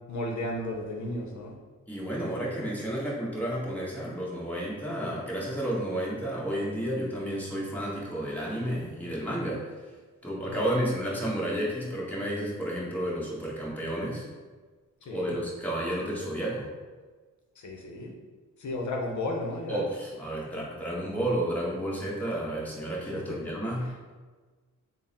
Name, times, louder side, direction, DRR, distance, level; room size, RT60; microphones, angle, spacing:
voice 1, 0.1-1.6 10.5-10.9 15.0-15.4 17.6-18.1 18.6-19.8 23.1-23.6, left 2 dB, 65° left, 0 dB, 0.6 m, -34 dB
voice 2, 1.9-9.7 10.2-14.3 15.1-16.7 19.7-24.1, right 1 dB, 5° left, -6 dB, 1.1 m, -31 dB
3.5 x 2.0 x 4.1 m, 1.4 s
cardioid pair, 75°, 31 cm